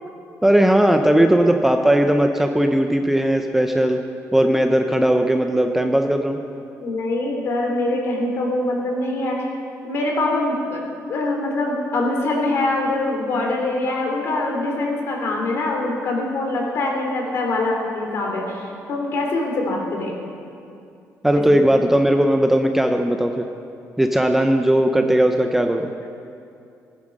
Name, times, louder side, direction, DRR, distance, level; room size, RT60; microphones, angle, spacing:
voice 1, 0.4-4.0 4.3-6.4 21.2-23.4 24.0-25.9, right 1 dB, 5° right, 4 dB, 0.5 m, -18 dB
voice 2, 6.8-9.5 9.8-10.8 11.1-20.1 21.4-21.5, left 2 dB, 50° left, 0 dB, 2.9 m, -23 dB
19.0 x 9.7 x 6.4 m, 2.6 s
cardioid pair, 180°, 6 cm